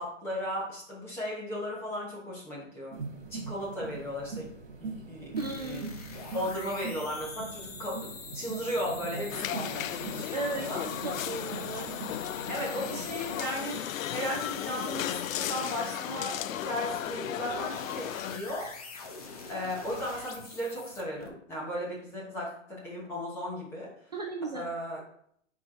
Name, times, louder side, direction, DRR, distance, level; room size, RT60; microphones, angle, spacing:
voice 1, 0.0-3.0 3.3-4.5 4.8-5.8 6.3-10.8 12.5-13.8 14.1-18.8 19.5-23.9 24.5-25.0, equal, 5° left, -5 dB, 1.0 m, -36 dB
sound 1, 2.9-13.4, right 4 dB, 60° right, 2.1 m, -42 dB
sound 2, 5.4-21.3, left 4 dB, 30° left, 0.7 m, -45 dB
voice 2, 5.4-5.9 10.3-10.7 11.0-11.9 24.1-24.7, right 3 dB, 35° right, 1 dB, 0.5 m, -35 dB
sound 3, 9.3-18.4, left 12 dB, 90° left, 0.5 m, -35 dB
6.2 x 4.7 x 4.6 m, 0.66 s
hypercardioid pair, 175°, 39 cm